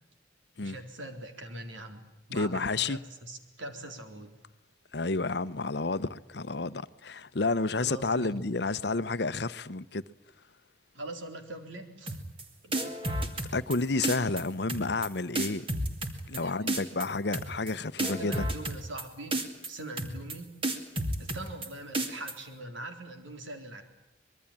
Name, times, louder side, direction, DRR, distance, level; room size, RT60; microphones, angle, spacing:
voice 1, 0.6-4.3 7.7-8.4 10.9-12.2 12.6-12.8 16.4-16.9 18.2-20.6 21.2-23.8, right 1 dB, 80° right, 3.9 m, -42 dB
voice 2, 2.3-3.0 4.9-10.0 13.5-15.7 16.3-18.4, left 3 dB, 60° left, 0.8 m, -30 dB
sound 1, 12.1-12.4 12.7-13.8 14.0-14.4 14.7-15.1 15.3-16.4 16.7-17.1 17.3-17.7 18.0-19.0 19.3-19.7 20.0-20.3 20.6-21.7 21.9-22.3, right 1 dB, 30° right, 2.4 m, -31 dB
25.0 x 22.0 x 8.7 m
head